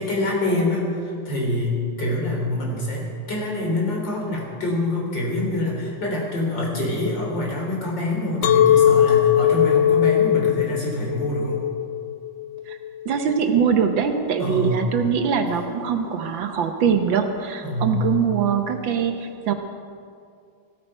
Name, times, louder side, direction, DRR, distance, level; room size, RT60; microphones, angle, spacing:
voice 1, 0.0-11.6 14.4-14.9 17.6-18.0, left 1 dB, 60° left, -2 dB, 4.0 m, -25 dB
Chink clink, 8.4-13.6, left 10 dB, 75° left, 1.3 m, -19 dB
voice 2, 13.0-19.5, right 7 dB, 70° right, 6 dB, 1.6 m, -22 dB
15.0 x 13.5 x 5.5 m, 2.3 s
omnidirectional pair, 2.3 m